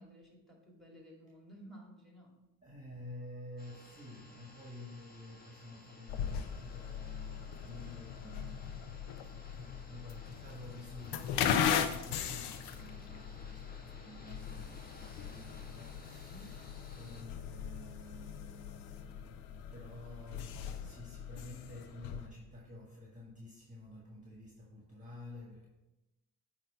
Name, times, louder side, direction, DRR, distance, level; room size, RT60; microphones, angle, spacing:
voice 1, 0.0-2.5 16.3-16.8, equal, ahead, 2.3 m, -55 dB
voice 2, 2.6-8.9 9.2-16.7 16.9-25.7, left 1 dB, 20° right, 1.5 m, -50 dB
sound 1, 3.6-17.2, left 1 dB, 20° left, 1.5 m, -57 dB
sound 2, 6.1-22.3, left 8 dB, 80° left, 0.6 m, -39 dB
7.6 x 3.0 x 5.4 m
supercardioid pair, 60°, 39 cm